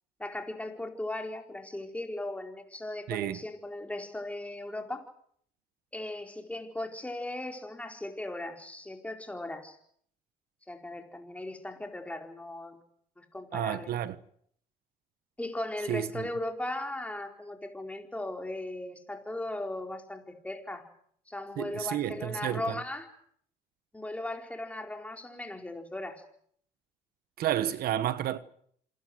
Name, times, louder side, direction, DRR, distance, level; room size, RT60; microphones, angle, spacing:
voice 1, 0.2-5.0 5.9-9.8 10.7-12.8 13.2-13.9 15.4-20.8 21.3-23.1 23.9-26.2, left 1 dB, 10° left, 4.5 m, -37 dB
voice 2, 3.1-3.4 13.5-14.2 15.9-16.3 21.6-22.8 27.4-28.4, right 11 dB, 70° right, 1.3 m, -31 dB
27.0 x 20.0 x 7.9 m
cardioid pair, 115°, 16 cm